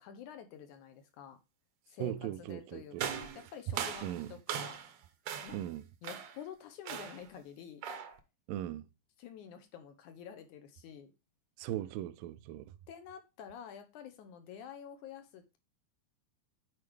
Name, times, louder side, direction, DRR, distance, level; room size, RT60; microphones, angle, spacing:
voice 1, 0.0-1.4 1.9-4.8 5.4-5.6 6.0-7.8 9.2-11.1 12.9-15.6, left 8 dB, 70° left, 2.1 m, -49 dB
voice 2, 2.0-3.1 4.0-4.3 5.5-5.8 8.5-8.9 11.6-12.7, right 12 dB, 85° right, 2.3 m, -38 dB
sound 1, 3.0-5.0 5.3-5.7 6.0-6.4 6.9-7.3 7.8-8.2, right 8 dB, 70° right, 1.8 m, -39 dB
9.4 x 4.7 x 3.1 m
omnidirectional pair, 3.9 m